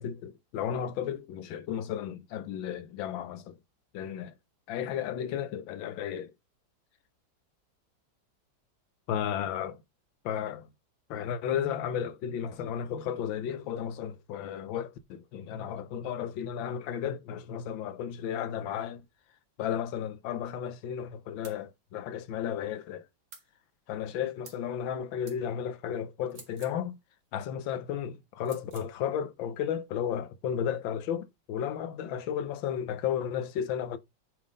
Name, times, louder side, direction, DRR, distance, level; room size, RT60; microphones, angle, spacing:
voice 1, 0.0-3.5 3.9-4.3 4.7-6.3 9.1-9.8 10.2-10.7 11.1-19.0 19.6-23.0 23.9-27.0 27.3-34.0, left 9 dB, 80° left, 1.5 m, -33 dB
sound 1, 21.4-21.6 23.3-23.5 24.4-24.7 25.3-25.4 26.3-26.8 28.4-28.9, right 5 dB, 70° right, 2.4 m, -50 dB
9.2 x 3.8 x 3.7 m
omnidirectional pair, 2.1 m